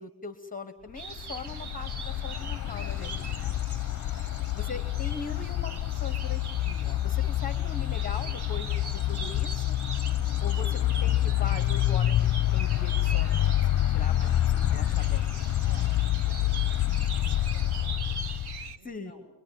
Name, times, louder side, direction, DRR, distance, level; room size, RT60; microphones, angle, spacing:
voice 1, 0.0-3.5 4.5-9.7 10.4-15.4 18.8-19.1, left 4 dB, 20° left, 10 dB, 1.2 m, -41 dB
sound 1, 1.0-18.8, right 5 dB, 65° right, 1.5 m, -42 dB
sound 2, 1.1-18.7, left 13 dB, 45° left, 0.8 m, -27 dB
voice 2, 15.6-19.3, right 1 dB, 25° right, 2 dB, 6.4 m, -55 dB
24.5 x 22.0 x 9.1 m, 1.1 s
cardioid pair, 145°, 42 cm